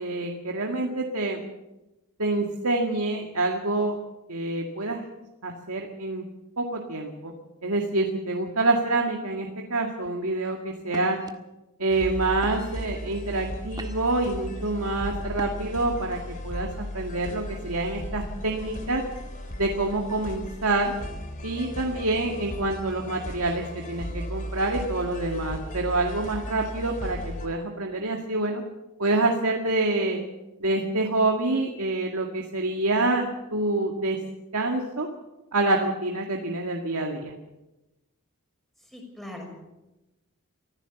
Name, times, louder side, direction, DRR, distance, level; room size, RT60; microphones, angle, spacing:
voice 1, 0.0-1.4 2.2-4.0 4.3-5.0 5.4-6.2 6.6-7.3 7.6-11.2 11.8-19.0 19.6-20.9 21.4-28.6 29.0-30.2 30.6-34.2 34.5-35.1 35.5-37.3, right 2 dB, 70° right, 2 dB, 2.1 m, -27 dB
sound 1, 10.0-10.3 10.9-11.3 12.0-12.1 12.4-12.9 13.4-14.2 15.3-15.8, right 1 dB, 20° right, 1.6 m, -42 dB
sound 2, 11.9-27.5, equal, 35° left, 3.1 m, -36 dB
voice 2, 38.9-39.5, left 1 dB, ahead, 1 dB, 6.2 m, -40 dB
24.5 x 15.5 x 7.1 m, 1.0 s
head